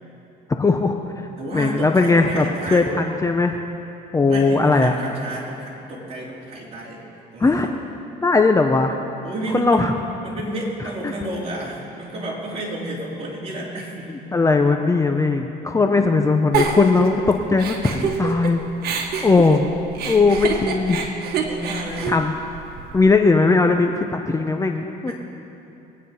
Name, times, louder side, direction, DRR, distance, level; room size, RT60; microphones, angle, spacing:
voice 1, 0.6-2.5 2.7-3.6 4.1-4.9 7.4-7.7 8.2-9.0 9.5-9.9 11.0-11.1 14.3-18.6 19.2-19.6 20.0-21.1 22.1-22.3 22.9-25.1, left 3 dB, 20° left, 4 dB, 0.8 m, -18 dB
voice 2, 1.4-2.9 4.3-7.1 7.3-7.7 9.2-9.9 10.2-14.1 15.8-16.0 21.4-22.1 25.0-25.1, right 1 dB, 40° right, -4 dB, 4.1 m, -31 dB
Giggle, 16.5-18.5 18.8-23.1, right 5 dB, 70° right, 1.7 m, -26 dB
22.0 x 9.6 x 5.6 m, 2.8 s
cardioid pair, 110°, 17 cm